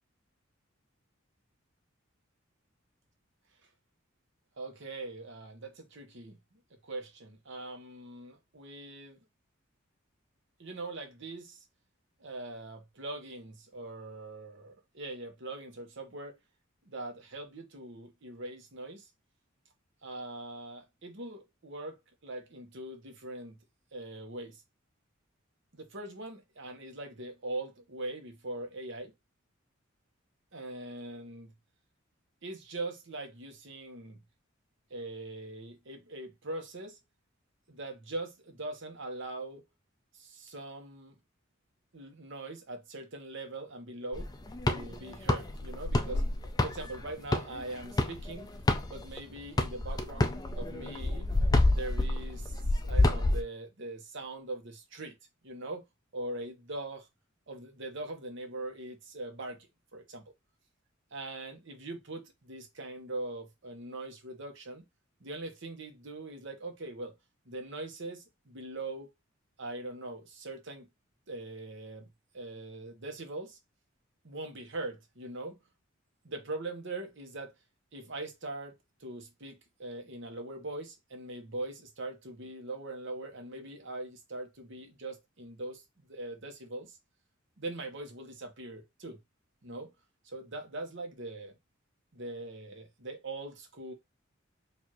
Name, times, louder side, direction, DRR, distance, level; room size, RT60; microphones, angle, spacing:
voice 1, 4.6-9.2 10.6-11.6 12.2-16.4 16.9-19.1 20.0-22.0 22.2-23.6 23.9-24.6 25.7-29.1 30.5-31.5 32.4-34.2 34.9-37.0 37.7-39.6 40.1-41.2 41.9-44.3 44.7-46.2 46.6-48.6 48.8-51.3 51.7-55.1 55.4-55.8 56.1-57.1 57.5-60.3 61.1-64.9 65.2-67.1 67.4-69.1 69.6-70.9 71.3-72.1 72.3-73.6 74.2-75.7 76.2-77.5 77.9-85.8 86.1-87.0 87.6-89.2 89.6-89.9 90.2-91.6 92.1-93.9, right 2 dB, 65° right, 1.1 m, -41 dB
sound 1, 44.1-49.2 49.6-53.4, left 2 dB, 20° left, 0.4 m, -28 dB
4.6 x 2.7 x 3.0 m
head